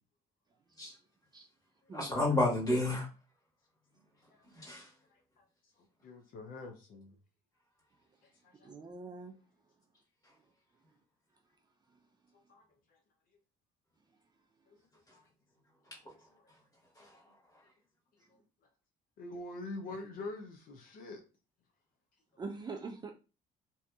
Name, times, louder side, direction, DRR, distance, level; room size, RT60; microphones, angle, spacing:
voice 1, 1.9-3.1 4.4-5.0 10.2-10.3 15.1-15.2 15.8-16.6 16.9-17.7, left 2 dB, 20° left, -4 dB, 1.4 m, -33 dB
voice 2, 5.1-5.4 5.8-7.2 8.2-8.7 12.3-13.0 14.7-14.8 15.1-15.3 17.0-17.2 19.2-21.2, left 2 dB, 55° left, 3 dB, 0.5 m, -46 dB
voice 3, 8.6-9.4 22.4-23.1, right 4 dB, 25° right, 3 dB, 0.4 m, -43 dB
2.7 x 2.5 x 2.2 m, 0.33 s
cardioid pair, 110°, 17 cm